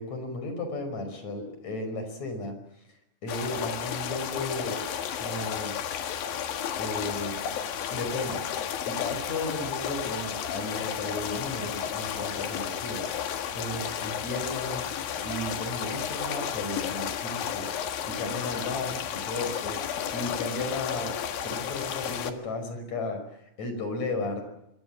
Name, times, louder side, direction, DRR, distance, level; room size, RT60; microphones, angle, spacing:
voice 1, 0.0-2.6 3.2-4.8 5.2-5.8 6.8-7.4 7.9-8.4 8.9-21.2 21.4-24.4, left 2 dB, 35° left, 7 dB, 6.0 m, -34 dB
sound 1, 3.3-22.3, left 9 dB, 60° left, 2.6 m, -33 dB
25.5 x 24.0 x 7.4 m, 0.80 s
omnidirectional pair, 5.9 m